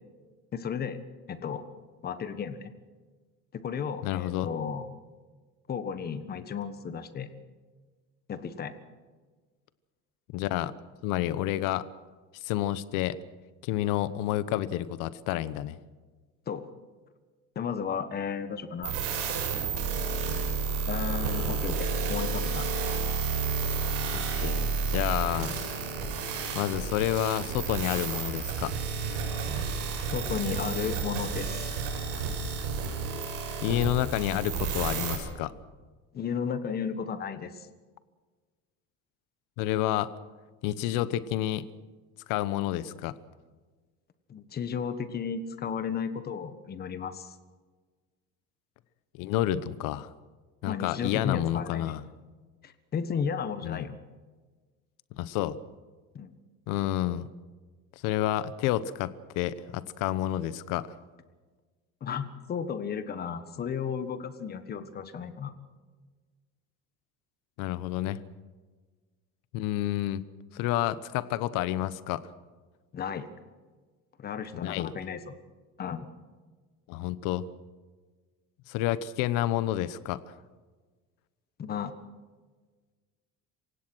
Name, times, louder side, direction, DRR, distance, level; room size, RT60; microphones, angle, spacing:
voice 1, 0.5-1.0 1.3-1.6 2.0-2.7 3.5-4.9 5.7-7.3 8.3-8.7 16.5-16.7 17.5-19.0 20.9-22.7 30.1-31.7 36.1-37.7 44.3-47.3 50.6-51.9 52.6-53.9 56.1-56.3 62.0-65.5 72.9-73.3 74.2-75.3 75.8-76.1 81.6-81.9, left 7 dB, 30° left, 11 dB, 1.4 m, -34 dB
voice 2, 4.0-4.5 10.3-10.7 11.0-11.9 12.4-13.2 13.6-15.8 24.1-25.6 26.5-28.7 33.6-35.5 39.6-40.1 40.6-41.6 42.3-43.1 49.2-50.1 50.6-52.0 53.6-53.9 55.2-55.6 56.7-57.3 58.0-61.0 67.6-68.2 69.5-70.2 70.5-72.2 74.6-74.9 76.9-77.5 78.7-80.3, left 13 dB, 70° left, 16 dB, 1.0 m, -29 dB
sound 1, 18.8-35.1, right 5 dB, 70° right, 6.8 m, -31 dB
27.5 x 16.5 x 6.2 m, 1.4 s
cardioid pair, 155°, 33 cm